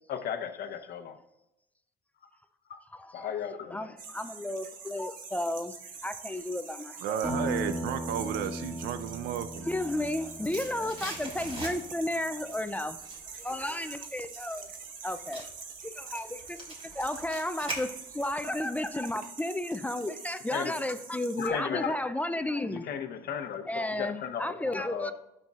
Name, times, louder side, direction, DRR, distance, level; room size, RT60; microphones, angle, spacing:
voice 1, 0.1-1.2 2.7-2.8 3.1-3.9 10.8-10.9 20.5-20.7 21.4-21.9 22.7-25.1, left 8 dB, 65° left, 0.9 m, -35 dB
voice 2, 2.9-3.3 3.7-7.3 9.6-13.0 13.3-14.7 15.0-15.5 15.8-22.9 23.7-25.1, left 1 dB, 10° left, 0.4 m, -33 dB
sound 1, 4.0-21.5, right 5 dB, 55° right, 1.2 m, -45 dB
voice 3, 7.0-9.7, right 10 dB, 75° right, 0.5 m, -33 dB
Acoustic guitar, 7.2-12.1, equal, 10° right, 1.8 m, -37 dB
sound 2, 10.2-12.1 12.5-18.4 18.7-18.8, right 2 dB, 35° right, 3.1 m, -42 dB
11.5 x 6.6 x 2.4 m
cardioid pair, 110°, 17 cm